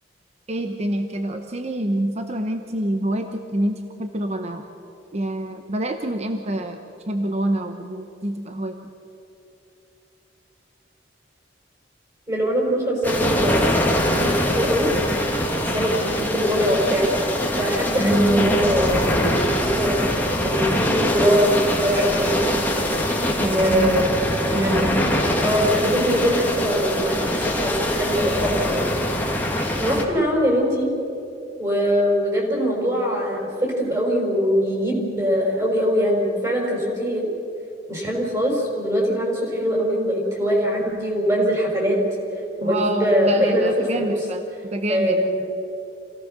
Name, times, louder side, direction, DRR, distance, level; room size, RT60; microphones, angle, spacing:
voice 1, 0.5-4.6 5.1-6.8 7.1-8.8 18.0-18.6 23.4-24.1 24.5-25.1 29.9-30.0 42.6-45.2, right 1 dB, 35° right, 6 dB, 0.9 m, -26 dB
voice 2, 12.3-14.9 15.6-17.1 17.6-22.5 23.4-25.1 25.4-29.0 29.8-30.9 31.6-37.3 37.9-42.0 42.6-44.2 44.9-45.3, equal, 20° right, -2 dB, 5.4 m, -22 dB
sound 1, 13.0-30.0, left 1 dB, 10° left, 2.3 m, -23 dB
27.5 x 17.5 x 6.7 m, 2.8 s
head